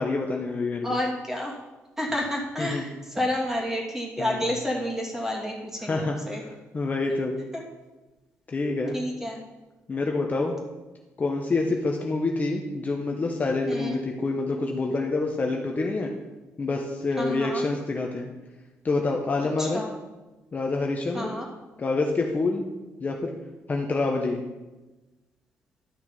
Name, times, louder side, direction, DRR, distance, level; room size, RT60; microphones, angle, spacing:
voice 1, 0.0-1.0 2.6-2.8 4.2-4.5 5.8-6.2 6.7-7.4 8.5-9.0 9.9-10.5 11.2-16.1 16.6-18.3 18.8-19.8 20.5-21.3 21.8-22.7 23.0-23.3 23.7-24.4, left 3 dB, 30° left, 1 dB, 1.0 m, -27 dB
voice 2, 0.8-1.6 2.0-6.4 7.5-7.6 8.9-9.4 13.7-14.0 17.2-17.6 19.6-19.9 21.1-21.5, left 1 dB, 10° right, -1 dB, 2.5 m, -30 dB
11.5 x 6.0 x 5.3 m, 1.1 s
cardioid pair, 105°, 5 cm